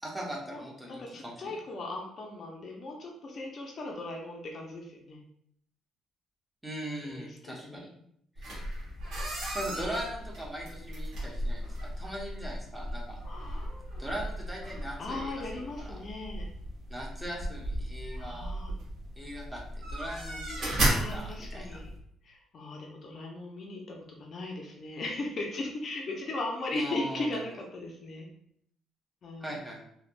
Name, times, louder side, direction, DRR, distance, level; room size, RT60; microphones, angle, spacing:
voice 1, 0.0-1.3 6.6-7.9 8.4-8.5 9.5-13.2 14.0-16.0 16.9-18.5 19.2-21.8 26.7-27.4 29.4-29.8, right 1 dB, 5° right, -3 dB, 0.6 m, -40 dB
voice 2, 0.9-5.2 7.0-7.9 13.2-13.7 15.0-16.5 18.2-18.7 20.9-21.9 22.2-28.3 29.2-29.6, left 2 dB, 35° left, 0 dB, 0.4 m, -38 dB
Office entrance door, 8.4-22.0, right 1 dB, 55° right, 1.0 m, -35 dB
3.1 x 2.1 x 2.5 m, 0.70 s
cardioid pair, 160°, 0 cm